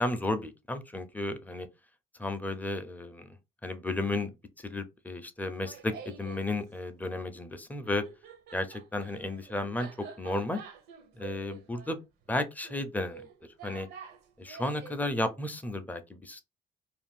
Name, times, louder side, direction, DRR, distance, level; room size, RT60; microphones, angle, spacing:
voice 1, 0.0-1.7 2.2-3.4 3.6-8.0 8.5-10.6 11.2-12.0 12.3-13.2 13.6-13.9 14.4-16.4, left 2 dB, 10° left, 0.4 m, -33 dB
Laughter, 5.4-6.5 7.7-15.0, right 7 dB, 75° right, 0.6 m, -48 dB
2.4 x 2.2 x 3.5 m
cardioid pair, 110°, 17 cm